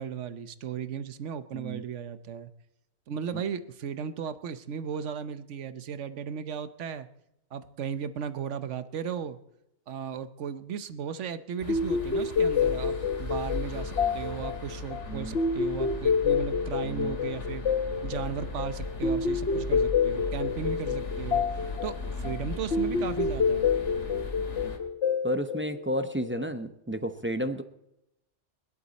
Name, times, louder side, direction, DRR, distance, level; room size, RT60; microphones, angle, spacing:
voice 1, 0.0-2.5 3.1-7.1 7.5-9.4 9.9-17.6 18.0-23.7, right 7 dB, 80° right, 12 dB, 1.2 m, -36 dB
voice 2, 1.5-1.8 15.1-15.4 16.8-17.1 22.9-23.1 25.2-27.6, equal, 10° right, 8 dB, 0.7 m, -32 dB
sound 1, 11.6-24.8, left 2 dB, 85° left, 2.5 m, -38 dB
sound 2, 11.7-26.5, left 5 dB, 65° left, 1.2 m, -28 dB
21.5 x 11.5 x 4.1 m, 0.83 s
omnidirectional pair, 1.2 m